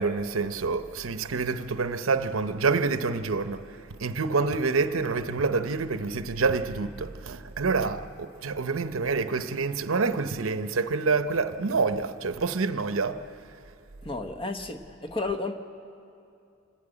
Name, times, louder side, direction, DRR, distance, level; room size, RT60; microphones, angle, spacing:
voice 1, 0.0-3.6 4.0-13.2, right 4 dB, 80° right, 0.8 m, -27 dB
voice 2, 14.0-15.6, left 3 dB, 25° left, 1.0 m, -32 dB
27.0 x 12.0 x 8.9 m
head